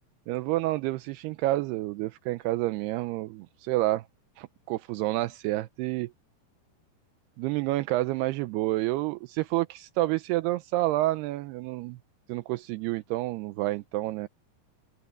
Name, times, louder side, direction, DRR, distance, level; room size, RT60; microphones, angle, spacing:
voice 1, 0.3-4.1 4.4-6.1 7.4-12.0 12.3-14.3, right 17 dB, 80° right, 2.5 m, -29 dB
open air
omnidirectional pair, 5.0 m